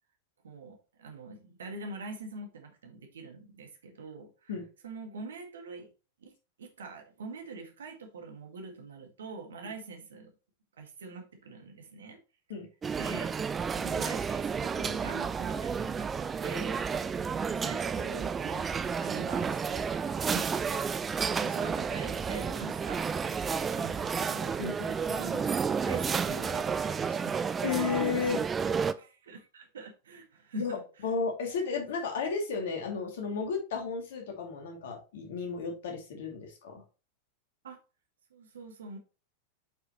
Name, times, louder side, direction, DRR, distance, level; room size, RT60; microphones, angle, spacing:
voice 1, 0.4-4.5 4.8-5.9 6.2-6.3 6.6-10.3 10.8-12.2 13.0-13.4 13.7-16.1 16.4-18.7 19.0-19.9 20.3-20.8 21.4-24.6 25.1-25.5 25.8-27.5 27.8-28.3 28.6-30.8 37.6-37.8 38.3-39.0, right 3 dB, 65° right, 4 dB, 1.9 m, -44 dB
sound 1, 12.8-28.9, right 6 dB, 20° right, 0.5 m, -31 dB
voice 2, 24.6-24.9 27.6-28.4 30.5-30.8 31.0-36.8, left 5 dB, 55° left, 2 dB, 2.5 m, -33 dB
8.0 x 5.7 x 3.0 m, 0.33 s
figure-of-eight pair, 90°, 0 cm